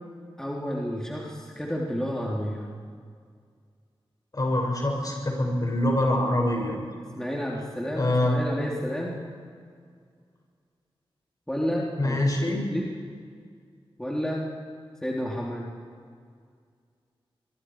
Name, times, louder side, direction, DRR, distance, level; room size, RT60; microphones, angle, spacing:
voice 1, 0.4-2.7 7.1-9.2 11.5-12.9 14.0-14.5 15.0-15.7, equal, 5° left, -3 dB, 3.4 m, -31 dB
voice 2, 4.3-6.8 8.0-8.4 12.0-12.7, left 1 dB, 40° left, 1 dB, 6.3 m, -24 dB
24.5 x 23.5 x 4.9 m, 2.1 s
wide cardioid pair, 85°, 10 cm